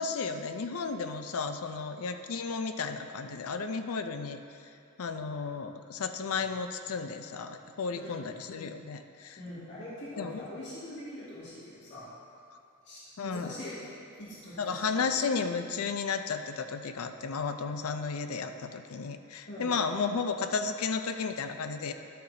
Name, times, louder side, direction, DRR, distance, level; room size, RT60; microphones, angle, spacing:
voice 1, 0.0-4.4 5.0-9.4 10.2-10.4 13.2-13.5 14.6-21.9, left 5 dB, 75° left, 8 dB, 0.5 m, -33 dB
voice 2, 9.4-12.1 12.8-15.0 19.5-19.7, left 1 dB, 55° left, -10 dB, 2.1 m, -43 dB
12.5 x 6.8 x 2.8 m, 2.6 s
head